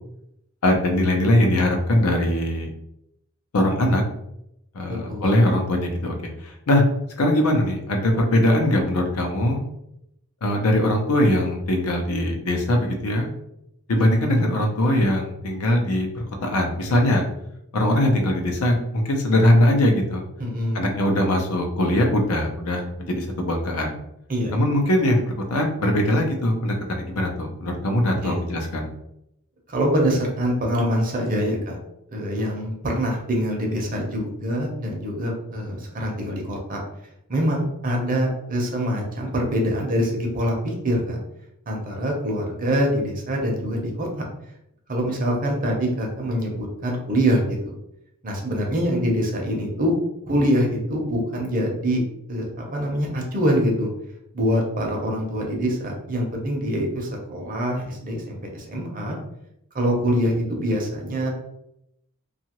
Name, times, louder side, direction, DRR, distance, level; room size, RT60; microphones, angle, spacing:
voice 1, 0.6-2.7 3.5-4.0 4.7-6.1 6.4-6.8 7.2-9.6 10.4-13.3 13.9-17.2 17.7-20.2 20.7-24.0 24.5-28.9, left 1 dB, 80° left, 3 dB, 0.6 m, -21 dB
voice 2, 4.9-5.3 14.0-14.5 20.4-20.9 24.3-24.6 28.1-28.4 29.7-31.8 32.1-36.8 37.3-41.2 41.7-44.3 44.9-47.7 48.2-49.9 50.3-52.0 52.3-52.5 52.7-53.9 54.3-59.2 59.7-61.3, equal, 40° right, 0 dB, 0.7 m, -24 dB
2.7 x 2.4 x 2.9 m, 0.80 s
head